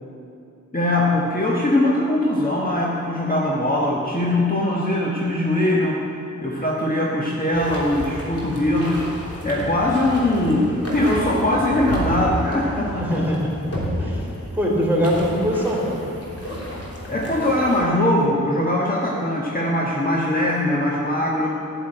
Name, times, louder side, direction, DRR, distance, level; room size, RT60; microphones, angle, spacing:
voice 1, 0.7-6.0 6.4-9.1 9.4-13.3 17.1-21.6, left 1 dB, 25° left, -4 dB, 1.5 m, -21 dB
sound 1, 7.5-17.8, equal, 45° left, 3.2 m, -31 dB
voice 2, 13.0-13.5 14.0-14.3 14.5-16.0, equal, 5° right, -4 dB, 3.7 m, -22 dB
13.0 x 7.4 x 8.9 m, 2.7 s
wide cardioid pair, 70°, 33 cm